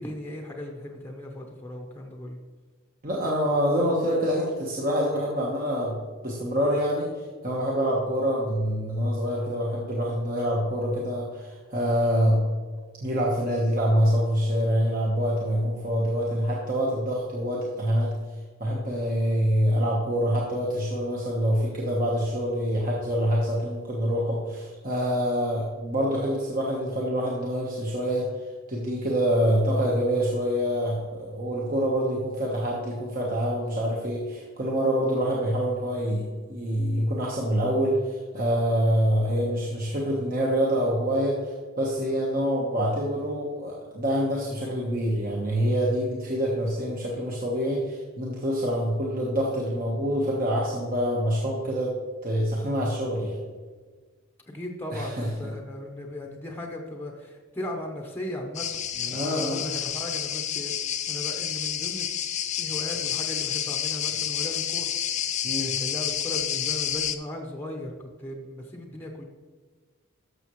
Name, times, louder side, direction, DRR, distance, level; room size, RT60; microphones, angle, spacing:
voice 1, 0.0-2.4 54.5-62.1 62.6-64.9 65.6-69.2, left 1 dB, 10° left, 1 dB, 0.8 m, -37 dB
voice 2, 3.0-6.0 6.2-7.1 7.4-12.5 13.0-18.1 18.6-28.3 28.7-52.0 52.2-53.4 54.9-55.3 59.1-59.6 65.4-65.7, equal, 40° right, -3 dB, 1.2 m, -26 dB
sound 1, 58.5-67.2, left 10 dB, 30° left, 0.4 m, -29 dB
13.0 x 6.5 x 3.1 m, 1.5 s
head